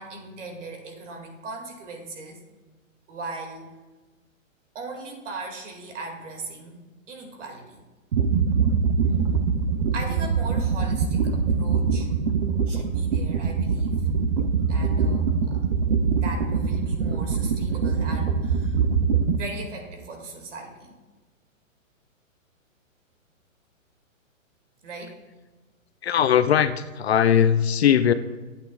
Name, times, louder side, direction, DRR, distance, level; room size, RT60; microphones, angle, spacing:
voice 1, 0.0-2.4 3.1-3.7 4.7-6.8 7.1-7.8 9.9-12.1 12.7-14.1 14.7-15.6 16.1-18.8 19.3-20.9 24.8-25.2, right 3 dB, 60° right, 2.3 m, -38 dB
sound 1, 8.1-19.4, right 5 dB, 40° right, 0.6 m, -23 dB
voice 2, 26.0-28.1, left 9 dB, 55° left, 0.5 m, -19 dB
13.0 x 8.4 x 2.4 m
hypercardioid pair, 165°, 40 cm